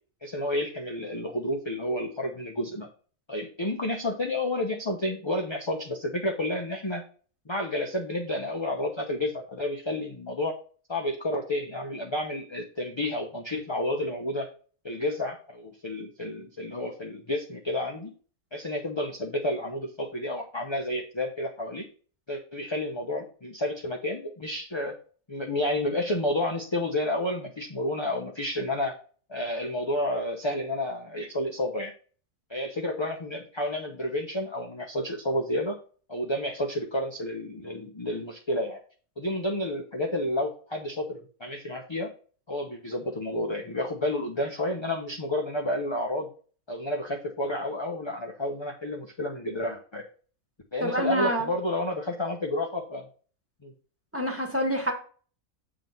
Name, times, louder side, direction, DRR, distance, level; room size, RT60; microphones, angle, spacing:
voice 1, 0.2-2.9 3.3-7.0 7.5-10.6 10.9-14.5 14.8-18.1 18.5-21.8 22.3-24.9 25.3-28.9 29.3-31.9 32.5-35.8 36.1-38.8 39.2-42.1 42.5-46.3 46.7-50.0 50.7-53.0 53.6-53.7, left 1 dB, 25° left, 1 dB, 0.7 m, -30 dB
voice 2, 50.8-51.5 54.1-54.9, equal, 10° right, 1 dB, 1.4 m, -27 dB
7.6 x 3.8 x 5.3 m, 0.40 s
omnidirectional pair, 1.5 m